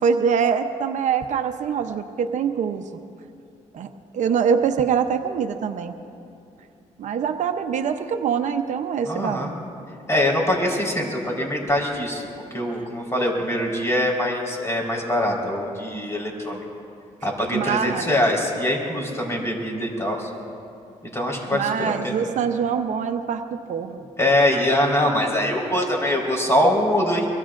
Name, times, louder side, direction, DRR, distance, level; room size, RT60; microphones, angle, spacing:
voice 1, 0.0-2.8 3.7-5.9 7.0-9.5 17.5-18.1 21.5-24.1, right 7 dB, 70° right, 7 dB, 0.8 m, -24 dB
voice 2, 9.1-9.5 10.1-12.3 12.5-16.6 17.2-20.3 21.1-22.2 24.2-27.3, left 1 dB, 20° left, -1 dB, 4.3 m, -23 dB
24.0 x 23.5 x 2.6 m, 2.6 s
cardioid pair, 80°, 13 cm